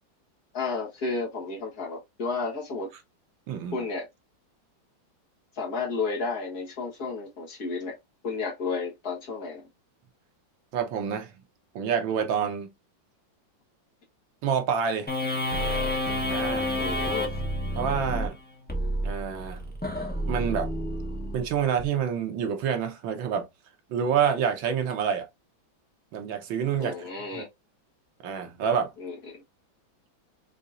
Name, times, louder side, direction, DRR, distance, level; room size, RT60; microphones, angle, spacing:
voice 1, 0.5-2.9 3.7-4.1 5.6-8.0 8.2-9.6 16.8-17.3 26.8-27.5 29.0-29.4, left 4 dB, 55° left, 1.8 m, -32 dB
voice 2, 10.7-11.3 11.7-12.7 14.4-15.1 16.3-16.7 17.7-18.4 19.0-19.6 20.3-20.7 21.3-23.5 23.9-25.3 26.1-26.9 27.3-27.5 28.2-28.9, right 7 dB, 80° right, 1.7 m, -27 dB
sound 1, 15.1-21.8, left 1 dB, 10° left, 0.7 m, -29 dB
5.3 x 2.8 x 2.5 m
omnidirectional pair, 2.1 m